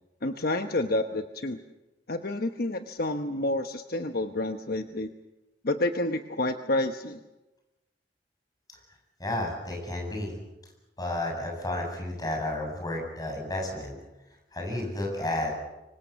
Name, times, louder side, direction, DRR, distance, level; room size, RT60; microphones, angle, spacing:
voice 1, 0.2-1.6 2.1-5.1 5.6-7.2, left 2 dB, 55° left, 7 dB, 1.0 m, -29 dB
voice 2, 9.2-10.3 11.0-14.0 14.5-15.5, left 1 dB, 20° left, 1 dB, 7.8 m, -32 dB
26.0 x 24.0 x 7.1 m, 1.0 s
head